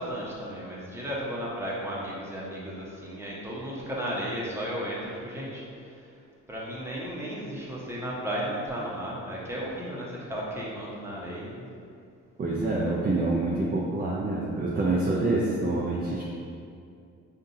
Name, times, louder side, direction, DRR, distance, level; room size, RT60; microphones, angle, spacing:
voice 1, 0.0-6.1 6.5-11.7, equal, 10° right, -6 dB, 1.0 m, -34 dB
voice 2, 12.4-16.3, right 2 dB, 30° right, -4 dB, 0.5 m, -26 dB
5.5 x 2.6 x 2.7 m, 2.4 s
cardioid pair, 90°, 30 cm